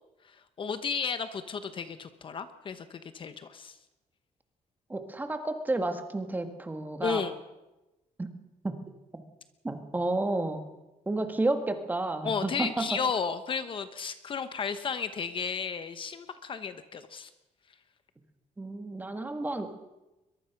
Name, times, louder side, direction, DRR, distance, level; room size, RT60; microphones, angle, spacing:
voice 1, 0.2-3.8 7.0-7.4 12.2-17.3, left 6 dB, 35° left, 10 dB, 1.0 m, -33 dB
voice 2, 4.9-7.2 8.2-8.3 8.6-8.8 9.1-9.2 9.6-10.7 11.0-13.0 18.6-19.9, right 2 dB, 15° right, 7 dB, 1.7 m, -31 dB
22.5 x 22.5 x 5.9 m, 1.0 s
cardioid pair, 180°, 14 cm